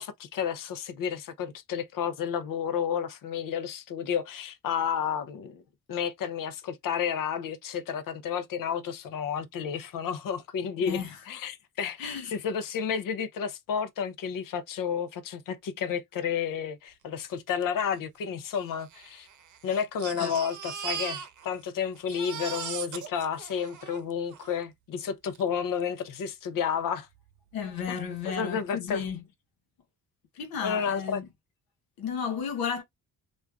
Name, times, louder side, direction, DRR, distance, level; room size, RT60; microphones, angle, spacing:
voice 1, 0.0-5.6 5.9-19.3 19.6-27.1 27.9-28.0 28.4-29.0 30.6-31.2, left 7 dB, 70° left, 0.7 m, -31 dB
voice 2, 10.8-11.2 12.0-12.3 20.2-20.4 27.5-29.2 30.3-31.3 32.0-32.8, left 6 dB, 85° left, 1.1 m, -33 dB
Crying sobbing, 17.6-17.7 17.9-18.0 18.8-21.7 21.9-24.5 25.3-25.4 25.8-25.9, right 8 dB, 60° right, 0.7 m, -39 dB
3.1 x 2.5 x 2.3 m
cardioid pair, 75°, 35 cm